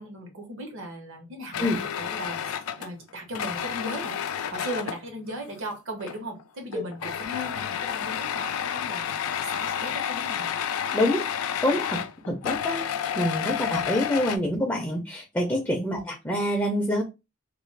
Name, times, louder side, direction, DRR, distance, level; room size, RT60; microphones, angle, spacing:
voice 1, 0.0-4.2 4.5-9.1 9.4-10.5 13.7-13.8 15.9-16.1, right 1 dB, 65° right, 3 dB, 1.0 m, -37 dB
sound 1, 1.5-5.0 6.0-6.4 6.7-14.4, left 9 dB, 85° left, 0.3 m, -30 dB
voice 2, 10.9-11.3 11.6-12.0 12.3-12.8 13.1-17.0, left 1 dB, 10° left, 0 dB, 0.5 m, -26 dB
2.4 x 2.3 x 3.2 m, 0.26 s
head